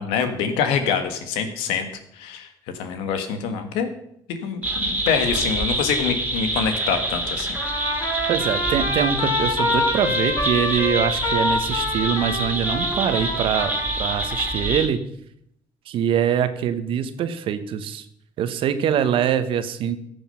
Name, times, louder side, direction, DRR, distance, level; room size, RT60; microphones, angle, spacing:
voice 1, 0.0-1.9 2.1-2.5 2.7-3.9 4.3-7.6, left 6 dB, 90° left, 8 dB, 1.5 m, -25 dB
sound 1, 4.6-14.9, right 1 dB, 15° right, 2.9 m, -27 dB
Trumpet, 7.5-14.7, left 2 dB, 55° left, 5.4 m, -26 dB
voice 2, 8.3-15.0 15.9-18.1 18.4-20.0, right 8 dB, 70° right, 11 dB, 1.1 m, -23 dB
14.0 x 7.1 x 5.7 m, 0.73 s
supercardioid pair, 70°, 9 cm